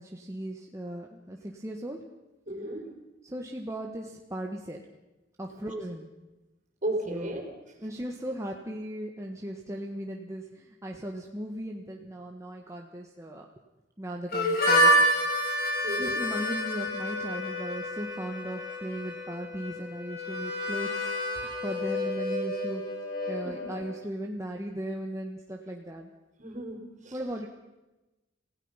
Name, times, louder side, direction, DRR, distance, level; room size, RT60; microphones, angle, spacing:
voice 1, 0.0-2.0 3.2-4.8 5.4-6.1 7.1-7.3 7.8-13.4 14.0-15.1 16.0-22.8 23.3-26.1 27.1-27.5, right 1 dB, 15° right, 1 dB, 1.4 m, -37 dB
voice 2, 2.5-2.9 5.5-5.6 6.8-7.4 15.8-16.3 23.4-23.5 26.4-27.2, right 1 dB, 40° right, 3 dB, 4.4 m, -34 dB
Harmonica, 14.3-23.9, equal, 55° left, 6.1 m, -28 dB
27.0 x 16.5 x 5.7 m, 1.0 s
head